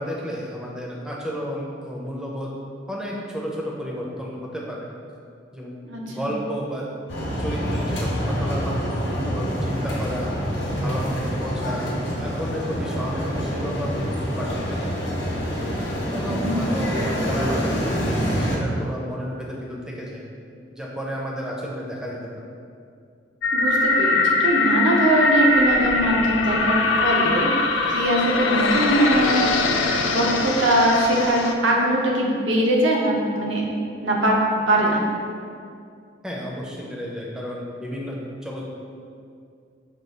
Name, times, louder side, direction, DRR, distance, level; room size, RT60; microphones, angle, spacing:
voice 1, 0.0-2.5 2.9-4.9 5.5-5.7 6.1-6.9 7.4-10.3 10.7-11.9 12.2-14.9 15.9-20.2 20.7-22.3 36.2-38.7, equal, 5° right, -3 dB, 0.4 m, -32 dB
voice 2, 5.9-6.3 16.3-16.8 23.5-29.5 30.1-33.6 34.0-35.1, right 1 dB, 80° right, -2 dB, 0.7 m, -21 dB
sound 1, 7.1-18.6, equal, 65° left, 0.8 m, -26 dB
sound 2, 23.4-31.5, left 3 dB, 80° left, 0.3 m, -22 dB
5.0 x 2.3 x 3.2 m, 2.4 s
head